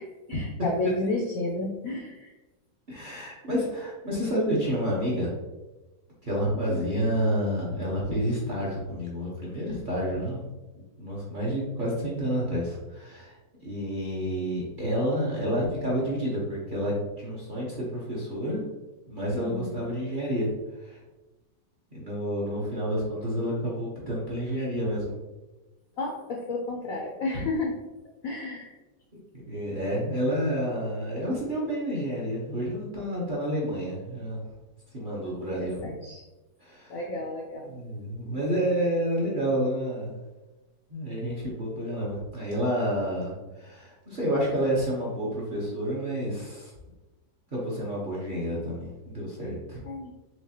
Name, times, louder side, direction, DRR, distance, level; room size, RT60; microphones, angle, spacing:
voice 1, 0.0-2.4 19.4-19.9 26.0-27.7 28.2-28.8 35.5-36.2 36.9-37.7 49.8-50.1, left 2 dB, 70° left, 0 dB, 0.8 m, -32 dB
voice 2, 2.9-5.3 6.2-10.5 10.7-13.4 13.6-18.6 19.1-20.5 20.8-21.0 21.9-25.1 29.5-34.4 34.9-35.8 36.6-37.0 37.7-40.2 40.9-46.7 47.5-49.8, equal, 35° right, -5 dB, 0.9 m, -29 dB
4.8 x 3.4 x 2.9 m, 1.1 s
omnidirectional pair, 2.0 m